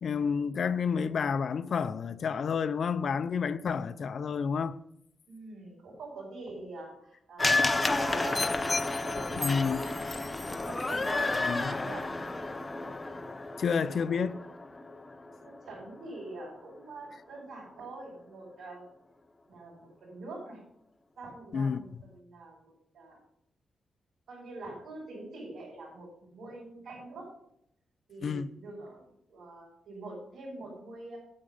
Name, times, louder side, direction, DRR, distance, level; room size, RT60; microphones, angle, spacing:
voice 1, 0.0-4.8 9.4-9.8 11.4-11.7 13.6-14.4 21.5-21.8 28.2-28.5, left 6 dB, 60° left, 0.5 m, -30 dB
voice 2, 5.3-10.3 10.7-12.1 15.4-18.9 19.5-20.6 21.2-23.2 24.3-27.3 28.1-31.2, right 2 dB, 85° right, 5.2 m, -44 dB
sound 1, 7.4-15.7 16.0-16.1, left 2 dB, 20° left, 0.7 m, -31 dB
9.0 x 8.8 x 5.4 m
cardioid pair, 110°, 0 cm